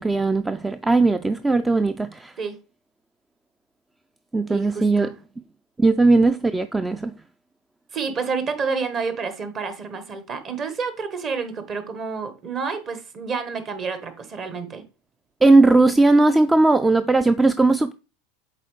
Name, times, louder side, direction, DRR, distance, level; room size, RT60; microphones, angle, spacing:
voice 1, 0.0-2.3 4.3-5.1 5.8-7.1 15.4-17.9, right 3 dB, 10° right, 0.3 m, -18 dB
voice 2, 4.5-5.1 7.9-14.8, right 5 dB, 40° right, 1.2 m, -29 dB
7.5 x 4.0 x 3.2 m
hypercardioid pair, 90°, 0 cm